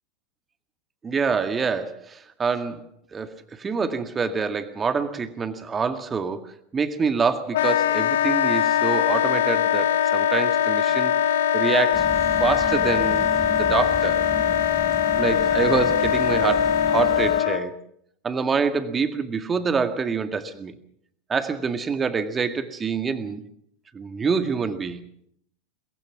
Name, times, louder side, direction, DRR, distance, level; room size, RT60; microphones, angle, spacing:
voice 1, 1.0-2.8 3.1-11.1 11.5-12.1 12.4-14.2 15.2-17.7 18.2-20.7 21.3-23.4 23.9-25.0, right 5 dB, 20° right, 9 dB, 1.9 m, -26 dB
Wind instrument woodwind instrument, 7.5-17.6, left 9 dB, 60° left, 1.0 m, -21 dB
sound 1, 11.9-17.4, left 1 dB, 5° left, 1.2 m, -35 dB
23.0 x 22.0 x 6.0 m, 0.72 s
figure-of-eight pair, 85°, 0 cm